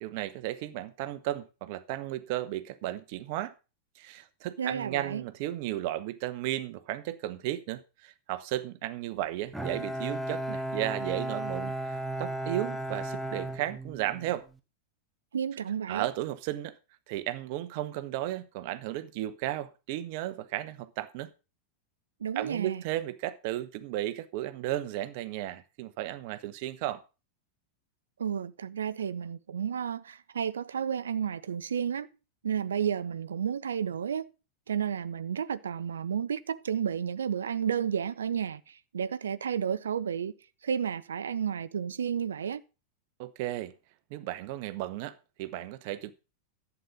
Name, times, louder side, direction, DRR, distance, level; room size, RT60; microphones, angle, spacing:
voice 1, 0.0-3.5 4.0-14.5 15.9-16.7 17.1-21.3 22.3-27.0 43.2-43.7 44.1-46.1, right 14 dB, 45° right, 1.0 m, -34 dB
voice 2, 4.6-5.2 15.3-16.1 22.2-22.8 28.2-32.1 32.4-34.3 34.7-40.3 40.6-42.6, right 8 dB, 65° right, 0.6 m, -32 dB
Bowed string instrument, 9.5-14.4, right 1 dB, 5° right, 1.4 m, -35 dB
11.5 x 8.4 x 5.3 m
figure-of-eight pair, 90°, 0 cm